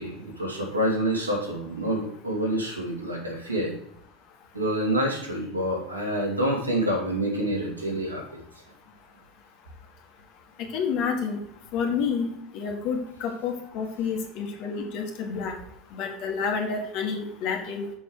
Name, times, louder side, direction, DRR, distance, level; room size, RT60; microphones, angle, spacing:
voice 1, 0.0-3.7 4.5-8.4, right 1 dB, 90° right, -2 dB, 2.4 m, -27 dB
voice 2, 10.7-11.4 11.7-12.3 12.5-15.5 15.9-17.9, left 6 dB, 50° left, 3 dB, 1.9 m, -29 dB
7.0 x 6.6 x 4.7 m, 0.73 s
figure-of-eight pair, 75°, 0 cm